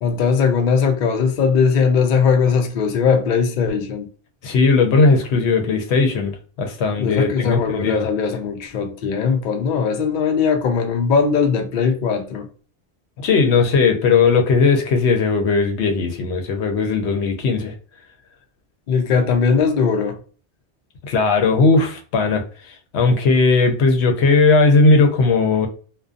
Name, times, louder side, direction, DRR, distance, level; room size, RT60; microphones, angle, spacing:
voice 1, 0.0-4.1 7.0-12.5 18.9-20.2, left 5 dB, 60° left, 0.6 m, -19 dB
voice 2, 4.4-8.0 13.2-17.7 21.0-22.4 22.9-25.7, left 4 dB, 85° left, 0.9 m, -17 dB
2.5 x 2.2 x 2.4 m
omnidirectional pair, 1.1 m